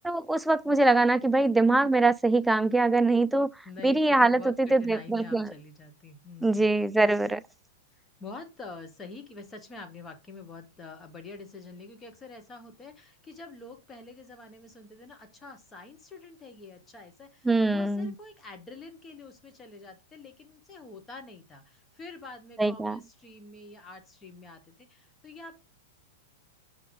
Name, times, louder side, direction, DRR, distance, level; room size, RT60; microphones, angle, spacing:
voice 1, 0.0-3.5 3.8-5.5 6.4-7.4 17.5-18.1 22.6-23.0, right 2 dB, 5° right, 0.3 m, -23 dB
voice 2, 3.6-6.7 7.9-25.5, left 3 dB, 20° left, 1.2 m, -46 dB
5.5 x 3.6 x 5.0 m
hypercardioid pair, 130°, 0 cm